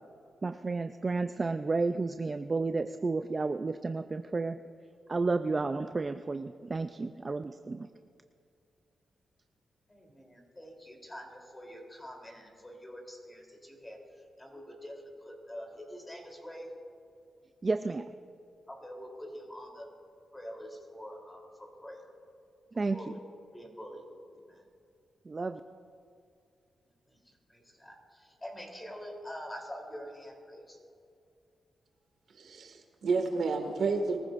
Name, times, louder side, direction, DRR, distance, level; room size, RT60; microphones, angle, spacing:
voice 1, 0.4-4.6 5.1-7.9 17.6-18.1 22.8-23.1 25.3-25.6, right 3 dB, 35° right, 9 dB, 0.4 m, -31 dB
voice 2, 9.9-14.0 14.4-14.9 15.2-16.7 18.7-19.8 20.3-22.0 22.9-23.2 23.5-24.0 27.5-30.8, equal, 15° left, 0 dB, 3.4 m, -45 dB
voice 3, 32.4-34.2, right 4 dB, 70° right, 3 dB, 1.9 m, -30 dB
23.0 x 15.0 x 2.6 m, 2.4 s
cardioid pair, 90°, 0 cm